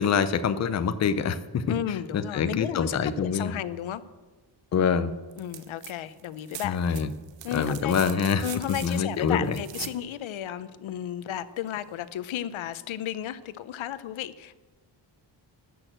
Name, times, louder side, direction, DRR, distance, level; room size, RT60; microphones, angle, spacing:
voice 1, 0.0-1.7 2.1-3.5 4.7-5.1 6.6-7.1 7.5-8.5 8.8-9.6, left 6 dB, 35° left, 12 dB, 0.5 m, -25 dB
voice 2, 1.7-4.0 5.4-6.8 7.4-8.0 8.4-14.6, left 11 dB, 85° left, 15 dB, 0.7 m, -33 dB
sound 1, 5.3-5.9 6.2-10.0 11.7-11.8, right 11 dB, 70° right, 0.8 m, -41 dB
12.5 x 6.3 x 7.8 m, 1.2 s
wide cardioid pair, 175°, 46 cm